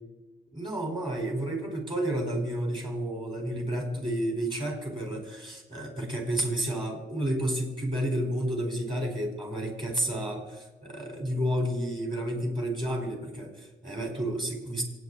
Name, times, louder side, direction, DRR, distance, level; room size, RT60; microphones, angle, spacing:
voice 1, 0.5-14.8, right 1 dB, 25° right, 2 dB, 5.1 m, -31 dB
27.0 x 9.4 x 4.3 m, 1.1 s
cardioid pair, 90°, 20 cm